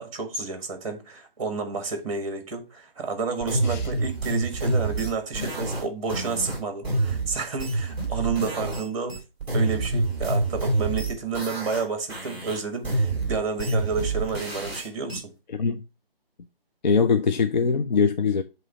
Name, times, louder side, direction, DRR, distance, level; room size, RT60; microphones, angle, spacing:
voice 1, 0.0-9.2 9.5-15.3, right 4 dB, 35° right, 1.5 m, -30 dB
sound 1, 3.4-8.8 9.1-11.8 12.1-15.2, right 2 dB, 5° right, 2.0 m, -27 dB
voice 2, 15.5-15.8 16.8-18.4, left 5 dB, 50° left, 0.6 m, -22 dB
7.7 x 3.1 x 4.8 m
figure-of-eight pair, 150°, 30 cm